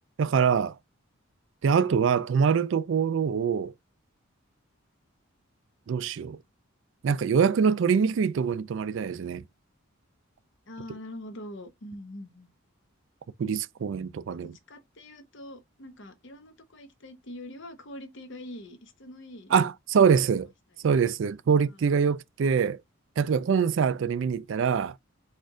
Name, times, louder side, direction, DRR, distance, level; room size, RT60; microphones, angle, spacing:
voice 1, 0.2-0.7 1.6-3.7 5.9-6.4 7.0-9.4 13.4-14.5 19.5-20.5 20.8-22.8 23.2-24.9, right 6 dB, 65° right, 0.3 m, -24 dB
voice 2, 10.7-12.5 14.3-19.5 20.1-20.4 20.7-20.8 21.7-22.2, left 1 dB, 60° left, 0.9 m, -44 dB
4.4 x 2.5 x 4.7 m
head